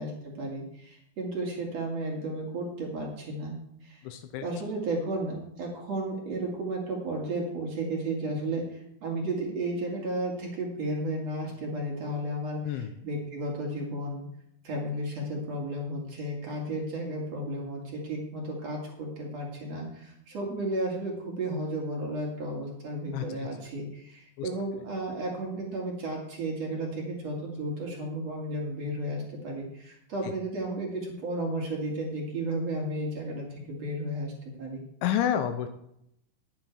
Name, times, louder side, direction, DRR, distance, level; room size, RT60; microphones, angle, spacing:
voice 1, 0.0-3.6 3.8-4.1 4.4-14.3 14.6-34.8, right 1 dB, 50° right, -1 dB, 2.0 m, -33 dB
voice 2, 4.0-4.5 12.7-12.9 23.1-23.5 24.4-24.5 30.2-30.3 35.0-35.7, left 10 dB, 85° left, 8 dB, 2.7 m, -29 dB
11.5 x 9.4 x 4.6 m, 0.75 s
omnidirectional pair, 6.0 m